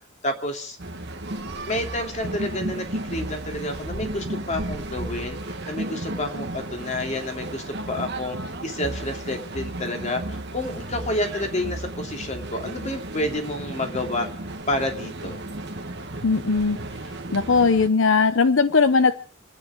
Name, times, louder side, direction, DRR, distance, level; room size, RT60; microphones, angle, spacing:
voice 1, 0.2-0.8 1.7-5.4 5.7-8.4 8.6-14.3 14.7-15.4, left 1 dB, 35° left, 4 dB, 2.8 m, -29 dB
sound 1, 0.8-17.9, right 1 dB, 55° right, 1.6 m, -34 dB
voice 2, 16.2-16.8 17.3-19.1, left 4 dB, 70° left, 12 dB, 0.7 m, -19 dB
28.5 x 9.8 x 4.8 m, 0.42 s
head